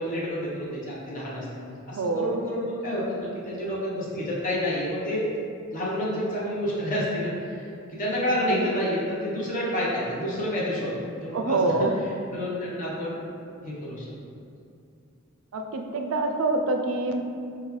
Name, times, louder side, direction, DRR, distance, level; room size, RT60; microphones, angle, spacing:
voice 1, 0.0-5.2 5.7-10.9 11.2-11.9 12.3-13.3 13.6-14.1, equal, 35° left, -7 dB, 0.9 m, -29 dB
voice 2, 1.9-2.4 8.4-8.7 11.3-11.9 15.5-17.2, right 3 dB, 75° right, 4 dB, 0.3 m, -26 dB
5.1 x 2.3 x 3.1 m, 2.5 s
head